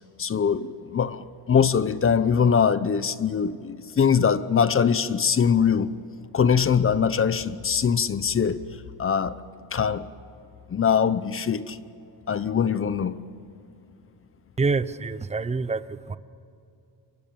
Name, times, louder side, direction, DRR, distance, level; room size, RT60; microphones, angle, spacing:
voice 1, 0.2-5.9 6.3-8.6 9.0-9.4 9.7-10.1 10.7-11.8 12.3-13.2, left 7 dB, 30° left, 15 dB, 0.8 m, -22 dB
voice 2, 14.6-16.2, right 4 dB, 15° right, 15 dB, 0.7 m, -26 dB
28.5 x 24.0 x 7.2 m, 2.6 s
cardioid pair, 145°, 45 cm